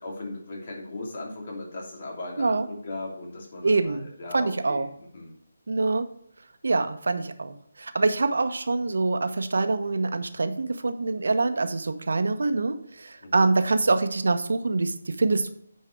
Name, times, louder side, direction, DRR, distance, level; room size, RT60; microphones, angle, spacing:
voice 1, 0.0-5.3 13.2-13.5, left 2 dB, 50° left, -1 dB, 2.7 m, -38 dB
voice 2, 3.6-4.1 4.3-4.9 5.7-6.1 6.6-15.5, right 3 dB, 70° right, 9 dB, 0.9 m, -25 dB
9.4 x 4.7 x 4.6 m, 0.68 s
figure-of-eight pair, 160°, 0 cm